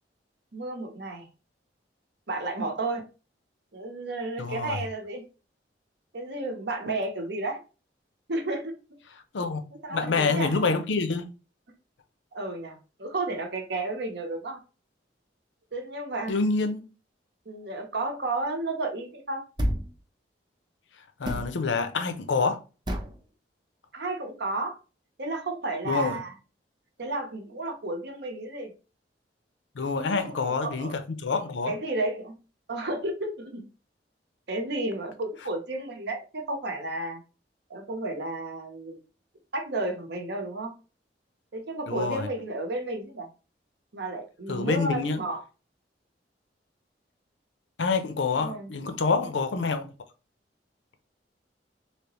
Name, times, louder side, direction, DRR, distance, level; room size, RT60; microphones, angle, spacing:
voice 1, 0.5-1.3 2.3-3.1 3.7-5.3 6.1-7.6 8.3-8.7 9.8-10.8 12.3-14.6 15.7-16.4 17.5-19.5 23.9-24.8 25.2-26.3 27.0-28.7 30.1-30.9 31.7-32.4 32.7-33.7 34.5-37.2 37.7-39.0 39.5-40.8 41.5-43.3 43.9-45.4 48.4-48.7, right 2 dB, 70° right, 0.8 m, -32 dB
voice 2, 4.4-4.8 9.3-9.6 9.9-11.3 16.3-16.8 21.2-22.6 25.9-26.2 29.8-31.7 41.9-42.3 44.5-45.2 47.8-49.9, left 4 dB, 90° left, 0.6 m, -27 dB
sound 1, 19.6-20.0 21.3-21.5 22.9-23.2, equal, 25° right, 0.6 m, -29 dB
3.4 x 2.9 x 2.9 m
head